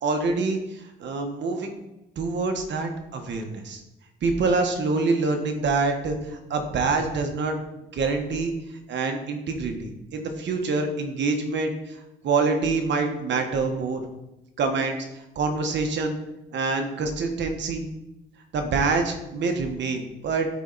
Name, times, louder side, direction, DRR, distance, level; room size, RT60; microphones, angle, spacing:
voice 1, 0.0-1.7 2.2-3.8 4.2-7.6 7.9-8.5 8.9-12.0 12.2-14.0 14.6-15.0 15.3-16.2 16.5-17.8 18.5-20.5, right 4 dB, 65° right, 4 dB, 1.4 m, -26 dB
12.5 x 4.4 x 4.1 m, 0.94 s
cardioid pair, 90°, 20 cm